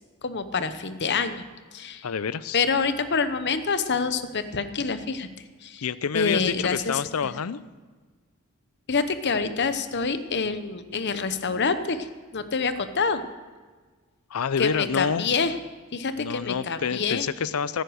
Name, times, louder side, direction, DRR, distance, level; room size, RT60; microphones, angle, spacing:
voice 1, 0.2-1.4 1.7-2.1 2.5-5.3 5.6-5.9 6.1-7.3 8.9-12.1 12.3-13.2 14.6-15.6 15.9-17.2, left 5 dB, 55° left, 11 dB, 0.9 m, -26 dB
voice 2, 2.0-2.6 5.8-7.6 14.3-15.3 16.2-17.8, left 6 dB, 90° left, 17 dB, 0.5 m, -28 dB
15.0 x 10.0 x 6.4 m, 1.4 s
head